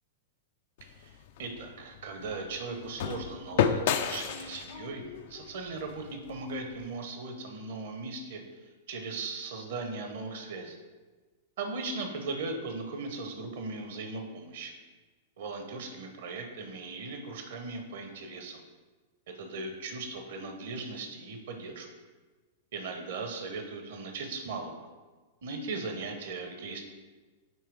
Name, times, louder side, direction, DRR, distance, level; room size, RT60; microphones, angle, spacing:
sound 1, 0.8-6.9, left 8 dB, 55° left, 0.4 m, -33 dB
voice 1, 0.8-1.1 1.4-8.4 8.9-10.8 11.6-14.7 15.4-18.6 19.3-21.9 22.7-24.9 25.4-26.8, right 3 dB, 60° right, 4 dB, 1.0 m, -38 dB
8.9 x 3.1 x 4.8 m, 1.3 s
figure-of-eight pair, 100°, 0 cm